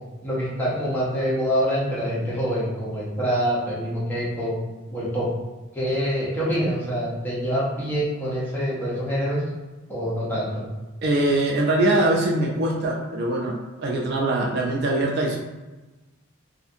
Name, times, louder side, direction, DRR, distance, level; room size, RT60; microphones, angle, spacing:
voice 1, 0.2-4.6 4.9-5.3 5.7-9.4 9.9-10.6, equal, 10° left, -8 dB, 0.7 m, -25 dB
voice 2, 11.0-15.4, right 1 dB, 45° right, -1 dB, 0.3 m, -22 dB
2.6 x 2.5 x 2.5 m, 1.2 s
head